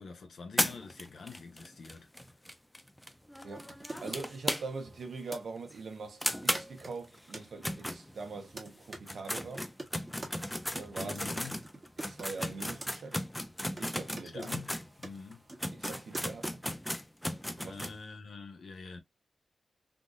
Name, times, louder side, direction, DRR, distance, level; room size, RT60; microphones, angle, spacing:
voice 1, 0.0-2.1 11.0-11.6 14.2-14.7 15.0-15.4 17.6-19.0, left 4 dB, 65° left, 0.9 m, -46 dB
sound 1, 0.6-5.0 5.3-5.4 5.7-5.8 6.2-8.5 8.9-14.9 15.3-15.4 15.6-18.0, equal, 5° left, 0.4 m, -36 dB
sound 2, 3.5-5.4 6.2-6.3 6.5-7.5 8.1-9.0 9.5-10.4 11.0-12.9 13.2-13.5 13.8-16.6, right 2 dB, 25° right, 1.0 m, -47 dB
voice 2, 4.0-9.7 10.7-11.4 12.0-13.2 13.8-14.5 15.7-16.6 17.6-17.9, right 4 dB, 65° right, 0.9 m, -43 dB
3.7 x 2.5 x 2.3 m
wide cardioid pair, 140°, 0 cm